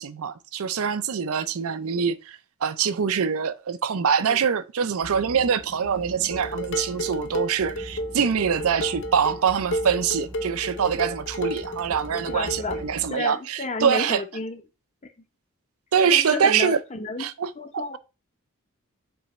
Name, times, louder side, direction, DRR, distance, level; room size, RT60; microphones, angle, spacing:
voice 1, 0.0-14.2 15.9-16.8 17.2-17.8, right 7 dB, 70° right, 0.5 m, -24 dB
sound 1, 5.0-13.1, right 1 dB, ahead, 0.7 m, -43 dB
Dishes pots and pans, 6.3-12.9, equal, 55° left, 0.7 m, -32 dB
voice 2, 12.3-12.8 13.1-14.6 16.1-17.3 17.6-18.0, left 3 dB, 30° left, 0.9 m, -31 dB
7.0 x 3.4 x 4.2 m
head